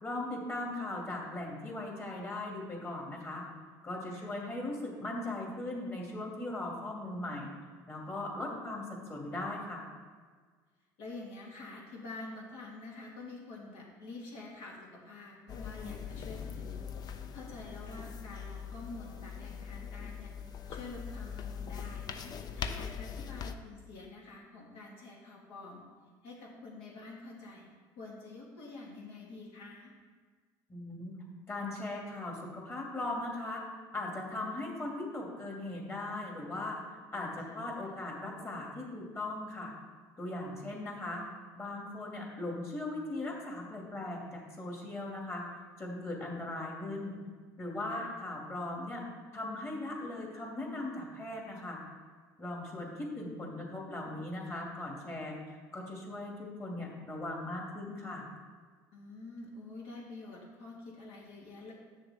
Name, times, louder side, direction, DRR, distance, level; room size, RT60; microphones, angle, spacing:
voice 1, 0.0-3.4 3.8-7.5 7.9-9.8 30.7-31.1 31.5-33.6 33.9-39.7 40.2-41.2 41.6-45.4 45.8-47.1 47.6-49.0 49.3-51.8 52.4-55.4 55.7-58.3, left 2 dB, 25° left, -1 dB, 2.6 m, -39 dB
voice 2, 8.4-8.8 11.0-20.3 20.7-25.8 26.2-29.9 37.4-37.6 47.9-48.1 58.9-61.7, left 3 dB, 70° left, -3 dB, 2.6 m, -48 dB
sound 1, 15.5-23.5, left 7 dB, 45° left, 0.6 m, -41 dB
8.7 x 6.6 x 4.4 m, 1.5 s
supercardioid pair, 95°, 10 cm